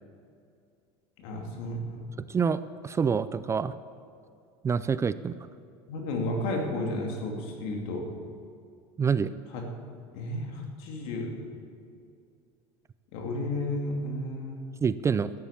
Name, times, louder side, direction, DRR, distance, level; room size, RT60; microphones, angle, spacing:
voice 1, 1.2-2.0 5.9-8.1 9.5-9.6 10.1-11.3 13.1-14.6, left 1 dB, 70° left, 1 dB, 2.7 m, -32 dB
voice 2, 2.3-3.7 4.6-5.3 9.0-9.3 14.8-15.3, right 6 dB, 20° right, 15 dB, 0.4 m, -26 dB
12.5 x 10.0 x 7.4 m, 2.4 s
supercardioid pair, 105°, 13 cm